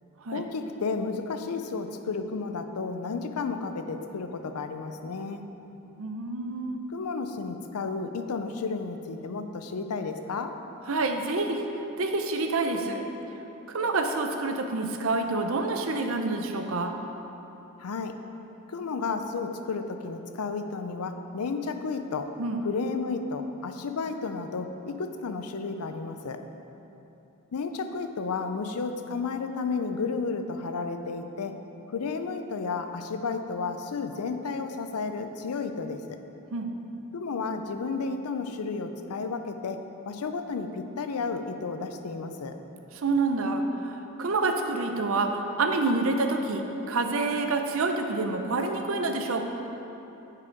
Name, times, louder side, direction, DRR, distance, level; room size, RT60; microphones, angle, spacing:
voice 1, 0.3-5.4 6.9-10.5 17.8-18.2 18.7-22.3 22.6-26.4 27.5-31.6 31.9-36.0 37.1-39.8 40.1-42.6, left 4 dB, 90° left, 7 dB, 0.5 m, -32 dB
voice 2, 6.0-6.8 10.9-13.0 13.7-17.0 22.4-22.6 36.5-36.7 42.9-49.4, right 3 dB, 65° right, 5 dB, 0.6 m, -28 dB
9.5 x 4.9 x 4.5 m, 3.0 s
head